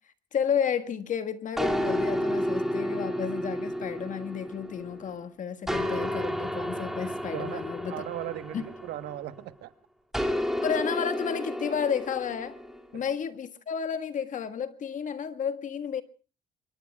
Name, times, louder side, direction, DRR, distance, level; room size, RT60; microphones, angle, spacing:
voice 1, 0.3-8.0 8.5-8.6 10.6-12.6 12.9-16.0, left 7 dB, 50° left, 1.6 m, -32 dB
sound 1, 1.6-5.1 5.7-9.4 10.1-12.8, equal, ahead, 2.4 m, -31 dB
voice 2, 7.3-9.7 12.9-13.0, right 13 dB, 80° right, 1.2 m, -38 dB
27.0 x 23.0 x 2.3 m
cardioid pair, 110°, 17 cm